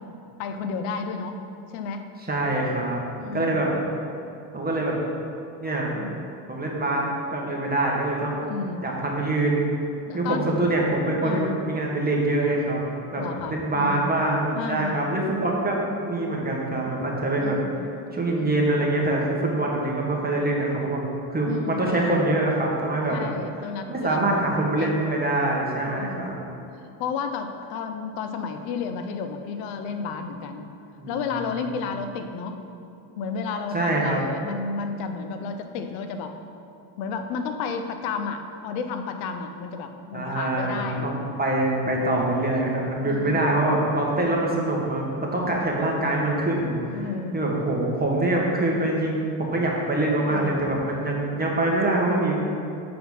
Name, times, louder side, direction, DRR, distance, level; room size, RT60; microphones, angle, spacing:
voice 1, 0.4-1.4 1.7-2.1 2.5-2.7 3.1-3.7 5.9-6.1 8.4-8.8 10.1-10.4 11.2-11.6 13.2-14.1 14.5-15.0 17.4-17.8 18.4-18.6 21.4-21.9 23.1-24.5 24.8-25.1 25.8-26.4 27.0-30.7 31.1-32.5 33.2-36.3 37.0-41.1 43.0-43.6 46.9-47.5 50.2-50.6, left 5 dB, 85° left, 7 dB, 0.7 m, -32 dB
voice 2, 2.3-3.0 3.3-3.7 4.5-4.9 5.6-5.9 6.5-8.4 8.8-9.7 10.1-12.8 13.1-13.2 13.5-17.6 18.1-23.2 23.9-26.3 31.0-31.2 31.7-31.9 33.7-34.2 40.1-47.0 47.3-52.4, right 2 dB, 20° right, -2 dB, 1.5 m, -24 dB
7.8 x 4.3 x 5.5 m, 2.6 s
supercardioid pair, 100°, 46 cm